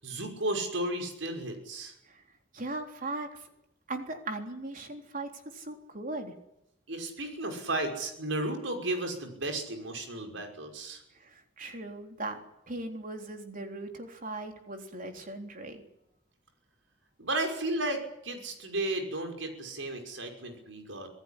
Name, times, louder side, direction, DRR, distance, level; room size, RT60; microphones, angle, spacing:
voice 1, 0.0-1.9 6.9-11.0 17.2-21.1, right 2 dB, 85° right, 4 dB, 5.8 m, -34 dB
voice 2, 2.5-3.4 3.9-6.3 11.2-12.4 12.7-15.8, right 2 dB, 45° right, 4 dB, 3.7 m, -38 dB
26.0 x 17.0 x 10.0 m, 0.80 s
head